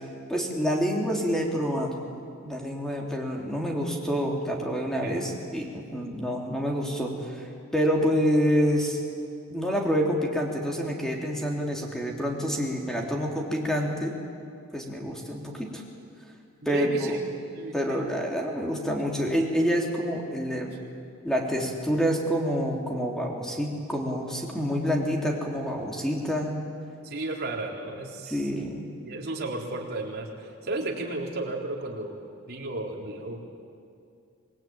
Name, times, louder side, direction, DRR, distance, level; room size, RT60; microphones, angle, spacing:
voice 1, 0.3-1.9 2.4-7.5 7.7-9.0 9.5-14.1 14.7-15.8 16.6-17.2 17.7-20.7 21.2-26.5 28.3-28.9, equal, 5° left, 0 dB, 3.3 m, -27 dB
voice 2, 16.6-17.2 17.5-18.1 27.0-28.5 29.0-32.2 32.5-33.4, right 2 dB, 50° right, -1 dB, 3.9 m, -34 dB
26.0 x 20.0 x 9.2 m, 2.4 s
head